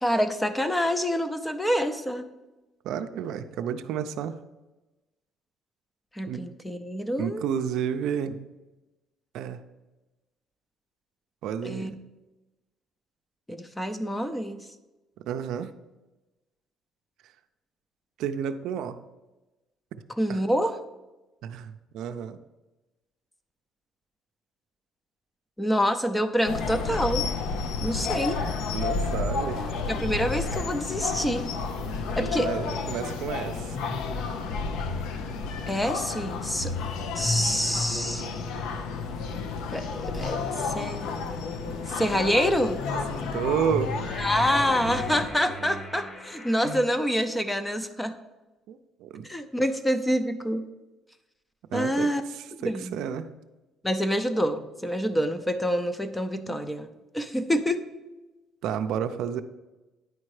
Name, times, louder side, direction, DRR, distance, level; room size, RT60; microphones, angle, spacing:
voice 1, 0.0-2.3 6.1-7.4 11.6-11.9 13.5-14.6 20.2-20.8 25.6-27.3 27.8-28.4 29.9-31.5 32.2-32.5 35.7-36.7 37.2-38.3 39.7-41.2 41.9-42.8 44.2-48.2 49.2-50.6 51.7-52.2 52.5-53.1 53.8-57.8, equal, 10° left, 10 dB, 0.6 m, -27 dB
voice 2, 2.8-4.4 6.2-6.4 7.2-8.4 9.3-9.6 11.4-12.0 15.2-15.7 18.2-19.0 20.3-20.4 21.4-22.4 28.7-29.6 32.2-33.8 43.3-44.0 48.7-49.3 51.7-53.3 58.6-59.4, right 8 dB, 75° right, 9 dB, 0.5 m, -31 dB
sound 1, 26.5-45.3, left 4 dB, 85° left, 0.7 m, -31 dB
sound 2, 28.4-46.8, left 1 dB, 30° left, 1.3 m, -39 dB
9.7 x 4.3 x 4.8 m, 1.1 s
cardioid pair, 120°, 0 cm